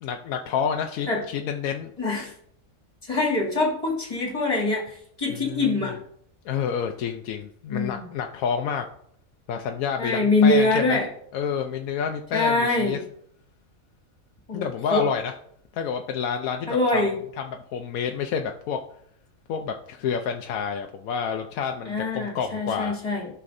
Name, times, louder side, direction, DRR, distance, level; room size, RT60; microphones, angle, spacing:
voice 1, 0.0-1.9 5.3-5.9 6.4-8.9 9.5-11.0 11.3-13.0 14.5-15.3 15.7-17.0 17.4-18.8 19.5-22.9, left 7 dB, 85° left, 4 dB, 1.0 m, -29 dB
voice 2, 2.0-2.3 3.0-6.0 7.7-8.1 10.0-11.1 12.3-13.0 14.5-15.1 16.7-17.2 21.9-23.3, left 2 dB, 25° left, -3 dB, 2.5 m, -24 dB
13.0 x 5.8 x 2.6 m, 0.68 s
omnidirectional pair, 1.4 m